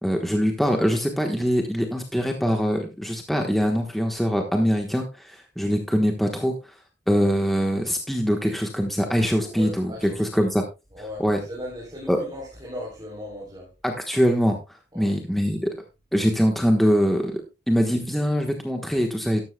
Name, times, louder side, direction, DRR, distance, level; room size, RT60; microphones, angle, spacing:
voice 1, 0.0-6.5 7.1-10.6 11.2-11.4 12.1-12.2 13.8-15.7 16.1-19.4, equal, ahead, 3 dB, 1.2 m, -23 dB
voice 2, 9.4-10.5 10.9-13.7 14.9-15.1, left 1 dB, 20° right, -2 dB, 3.5 m, -37 dB
12.5 x 12.5 x 2.2 m, 0.27 s
head